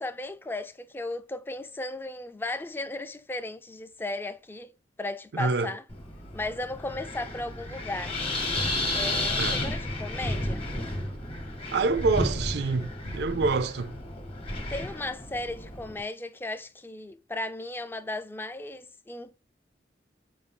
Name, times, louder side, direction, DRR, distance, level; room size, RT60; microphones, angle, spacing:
voice 1, 0.0-4.7 5.0-5.8 6.3-8.2 8.9-10.7 14.7-19.3, left 2 dB, 10° left, 0.3 m, -36 dB
voice 2, 5.3-5.7 9.4-9.8 11.7-13.9, right 3 dB, 65° right, 0.4 m, -27 dB
Wind, 5.9-16.0, left 1 dB, 35° left, 0.9 m, -32 dB
4.9 x 2.6 x 3.4 m
head